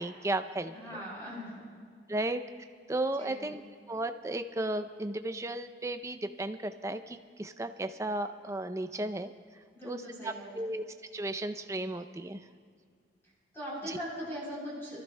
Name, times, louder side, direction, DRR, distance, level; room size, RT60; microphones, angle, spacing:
voice 1, 0.0-1.0 2.1-2.4 2.9-3.6 3.9-9.3 9.8-10.8 11.1-12.4 13.9-14.0, right 1 dB, 15° right, 8 dB, 0.4 m, -34 dB
voice 2, 0.7-1.6 3.2-3.4 9.7-10.5 13.5-15.0, equal, 15° left, -8 dB, 3.5 m, -40 dB
26.5 x 14.5 x 2.2 m, 2.1 s
head